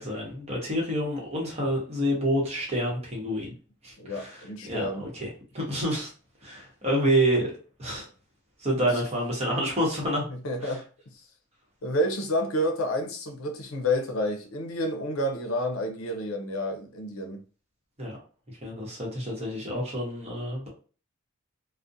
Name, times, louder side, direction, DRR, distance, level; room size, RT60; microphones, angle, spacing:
voice 1, 0.0-3.5 3.8-5.3 5.5-6.1 6.4-7.5 7.8-8.1 8.6-10.2 10.6-10.8 18.0-18.2 18.6-20.7, equal, 30° right, 0.9 m, -28 dB
voice 2, 4.0-5.1 8.8-8.9 10.3-10.8 11.8-17.4, left 1 dB, 80° left, 0.6 m, -29 dB
2.4 x 2.1 x 2.6 m
head